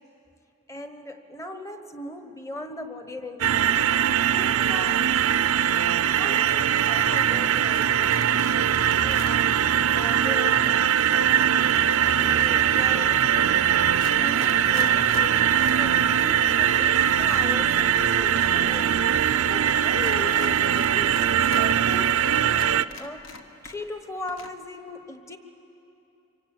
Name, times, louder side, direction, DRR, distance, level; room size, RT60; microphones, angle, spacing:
voice 1, 0.7-3.9 4.3-5.2 6.1-8.2 8.7-10.7 11.3-13.3 13.7-15.5 15.8-21.2 21.6-22.2 23.0-23.4 23.6-25.4, left 2 dB, 15° left, 7 dB, 1.2 m, -39 dB
sound 1, 3.4-22.9, right 9 dB, 75° right, 0.5 m, -21 dB
sound 2, 6.4-7.4 7.6-9.4 11.0-12.7 13.4-13.5 13.9-15.8 16.1-16.2 17.2-18.9 19.2-19.3 19.9-21.7 22.1-22.2 22.5-24.0 24.3-24.5, left 4 dB, 60° left, 1.4 m, -43 dB
25.5 x 23.5 x 9.1 m, 2.9 s
head